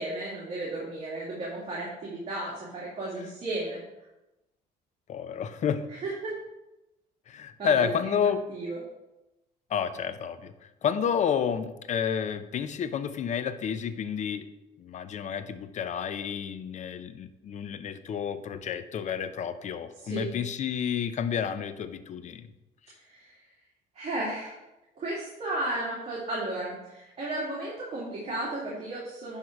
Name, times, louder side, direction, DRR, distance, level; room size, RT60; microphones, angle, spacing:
voice 1, 0.0-3.8 6.0-6.3 7.6-8.2 8.5-8.8 20.0-20.4 23.1-23.4 23.9-24.5 25.0-29.4, right 2 dB, 40° right, -6 dB, 2.3 m, -34 dB
voice 2, 5.1-5.8 7.3-8.4 9.7-10.5 10.8-14.5 14.8-22.5, left 7 dB, 45° left, 11 dB, 0.6 m, -30 dB
10.5 x 3.7 x 4.5 m, 0.96 s
cardioid pair, 110°, 17 cm